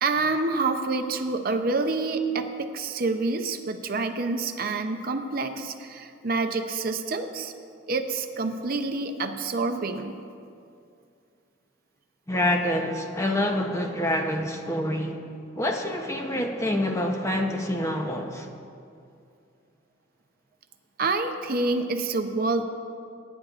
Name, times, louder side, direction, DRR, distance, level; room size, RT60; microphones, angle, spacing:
voice 1, 0.0-7.5 7.9-10.2 21.0-22.6, right 3 dB, 50° right, 7 dB, 0.6 m, -27 dB
voice 2, 12.3-15.2 15.6-18.5, left 1 dB, 15° left, 3 dB, 0.8 m, -27 dB
22.5 x 9.9 x 2.5 m, 2.4 s
head